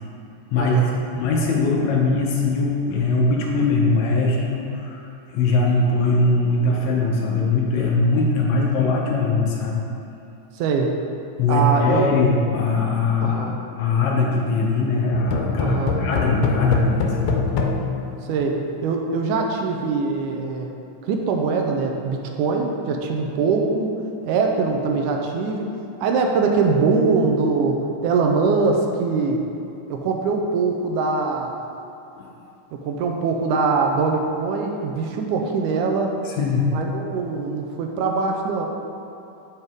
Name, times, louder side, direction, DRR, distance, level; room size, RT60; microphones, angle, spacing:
voice 1, 0.6-1.0 10.6-10.9 11.5-12.1 13.2-13.6 15.6-16.0 18.3-18.6 18.8-20.7 21.0-23.9 24.3-25.7 26.0-29.4 29.9-31.6 32.7-36.2 36.7-38.7, right 4 dB, 80° right, 2 dB, 2.0 m, -22 dB
voice 2, 1.1-5.0 5.3-9.8 11.4-13.5 13.8-17.7 32.2-32.3 36.3-36.8, left 3 dB, 75° left, -2 dB, 1.9 m, -21 dB
sound 1, 15.1-18.9, left 5 dB, 90° left, 2.2 m, -25 dB
8.0 x 5.5 x 3.5 m, 2.7 s
omnidirectional pair, 3.6 m